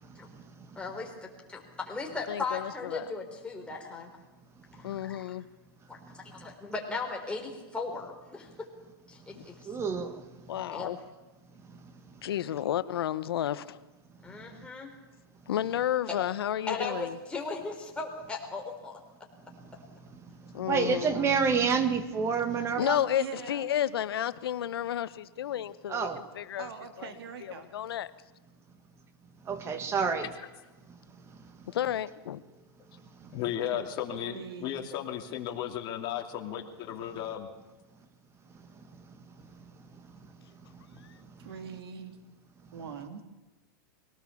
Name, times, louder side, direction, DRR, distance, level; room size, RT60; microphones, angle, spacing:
voice 1, 0.8-4.1 4.8-5.2 5.9-8.7 9.1-9.7 10.7-10.9 14.2-14.9 16.7-19.0, left 3 dB, 10° left, 1 dB, 4.0 m, -37 dB
voice 2, 2.3-3.1 4.8-5.4 9.3-9.4 10.5-11.0 12.2-13.8 15.5-17.2 20.5-21.3 22.8-26.7 27.0-27.1 27.4-28.1 31.7-32.4, left 11 dB, 85° left, 15 dB, 1.0 m, -32 dB
voice 3, 9.7-10.2 20.6-23.0 25.9-26.2 29.5-30.3, right 5 dB, 20° right, 9 dB, 1.8 m, -28 dB
voice 4, 23.2-23.6 26.6-27.7 34.2-34.9 41.4-42.2 42.7-43.2, right 7 dB, 85° right, 7 dB, 2.4 m, -42 dB
voice 5, 33.3-37.5, left 10 dB, 40° left, 2 dB, 2.8 m, -35 dB
23.0 x 18.0 x 7.1 m, 1.2 s
supercardioid pair, 145°, 12 cm